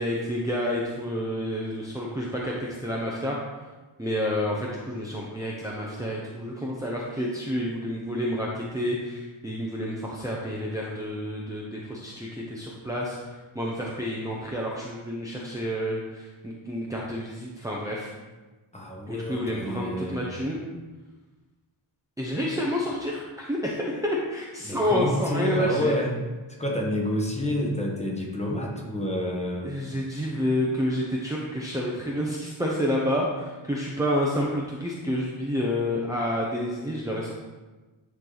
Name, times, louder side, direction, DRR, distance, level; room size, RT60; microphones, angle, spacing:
voice 1, 0.0-3.4 4.0-18.1 19.1-20.6 22.2-25.9 29.6-37.3, equal, 5° right, -4 dB, 0.7 m, -29 dB
voice 2, 18.7-20.3 24.6-26.2 26.6-29.7, equal, 15° left, -1 dB, 1.1 m, -29 dB
9.8 x 4.6 x 3.9 m, 1.2 s
wide cardioid pair, 170°, 49 cm